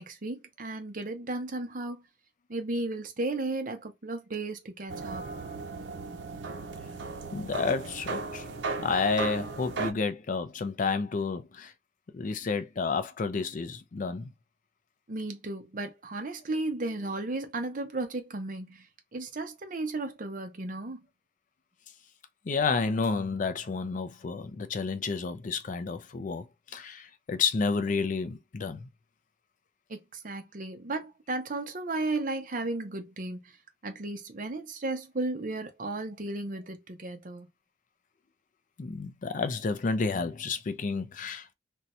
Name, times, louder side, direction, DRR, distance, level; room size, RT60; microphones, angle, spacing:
voice 1, 0.0-2.0 2.5-5.3 15.1-18.9 19.1-21.0 29.9-33.4 33.8-37.5, right 2 dB, 45° right, 0.7 m, -34 dB
sound 1, 4.9-9.9, right 3 dB, 85° right, 0.6 m, -36 dB
voice 2, 5.1-5.5 7.3-8.4 8.8-11.7 12.1-14.3 22.5-26.5 26.7-28.9 38.8-41.5, left 4 dB, 45° left, 0.4 m, -30 dB
2.6 x 2.2 x 4.1 m
head